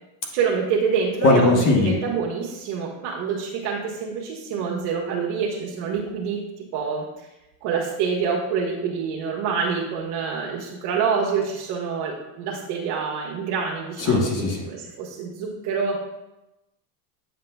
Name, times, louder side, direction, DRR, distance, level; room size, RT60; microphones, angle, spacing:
voice 1, 0.3-7.0 7.6-16.0, right 6 dB, 55° right, -3 dB, 1.3 m, -26 dB
voice 2, 1.2-1.9 14.0-14.6, left 3 dB, 40° left, 1 dB, 1.2 m, -19 dB
8.9 x 5.8 x 2.3 m, 0.96 s
supercardioid pair, 120°, 49 cm